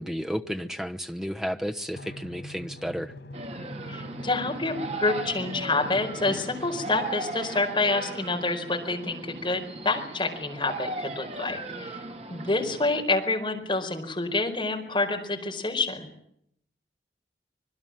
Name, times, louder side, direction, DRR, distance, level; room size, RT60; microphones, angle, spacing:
voice 1, 0.0-3.1, equal, 5° right, 1.1 m, -32 dB
Drum, 1.9-7.0, equal, 90° left, 3.4 m, -43 dB
sound 1, 3.3-13.0, right 2 dB, 35° right, 2.1 m, -37 dB
voice 2, 3.9-12.0 12.3-16.1, left 3 dB, 25° left, 4.7 m, -28 dB
26.0 x 21.0 x 7.6 m
head